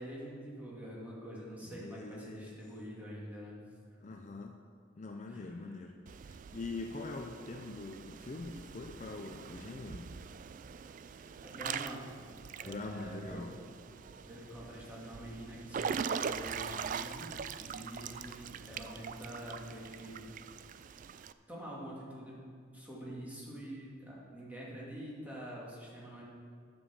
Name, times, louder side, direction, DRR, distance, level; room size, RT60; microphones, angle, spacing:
voice 1, 0.0-3.6 4.1-4.2 5.3-5.7 11.4-12.0 12.6-13.4 14.2-20.2 21.5-22.4 22.7-26.2, right 1 dB, 10° right, -6 dB, 2.4 m, -46 dB
voice 2, 1.7-2.6 4.0-4.6 5.0-6.0 6.2-10.1 12.6-13.5, left 3 dB, 40° left, 4 dB, 0.5 m, -43 dB
Water / Splash splatter / Drip, 6.1-21.3, right 6 dB, 45° right, 0.3 m, -42 dB
10.0 x 7.1 x 7.2 m, 2.2 s
head